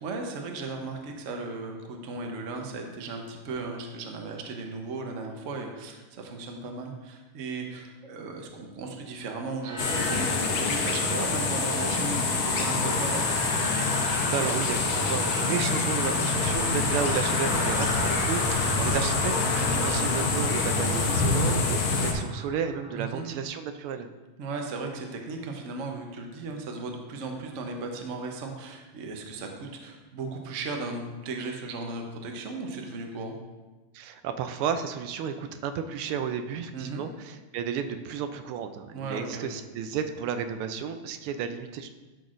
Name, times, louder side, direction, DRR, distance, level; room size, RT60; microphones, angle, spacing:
voice 1, 0.0-13.3 18.5-19.0 22.9-23.3 24.4-33.3 36.7-37.1 38.9-39.6, right 3 dB, 55° right, 2 dB, 0.9 m, -36 dB
sound 1, 9.6-23.3, equal, 5° right, 1.5 m, -35 dB
sound 2, 9.8-22.1, left 4 dB, 75° left, 1.8 m, -26 dB
voice 2, 14.3-24.1 33.9-41.9, right 7 dB, 80° right, 8 dB, 1.4 m, -32 dB
12.0 x 6.0 x 2.5 m, 1.2 s
omnidirectional pair, 2.4 m